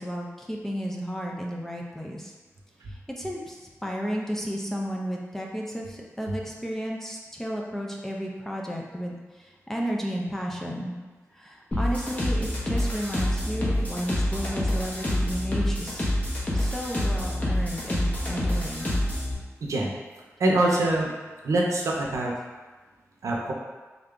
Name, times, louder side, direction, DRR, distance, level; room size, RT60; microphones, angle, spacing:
voice 1, 0.0-2.3 2.9-11.0 11.3-16.1 16.5-19.0, equal, 5° left, -1 dB, 0.5 m, -33 dB
sound 1, 11.7-19.3, left 1 dB, 30° left, 0.9 m, -27 dB
voice 2, 19.6-19.9 20.4-21.1 21.4-22.3 23.2-23.5, right 2 dB, 80° right, -2 dB, 0.6 m, -24 dB
3.6 x 2.3 x 3.7 m, 1.3 s
wide cardioid pair, 110°, 5 cm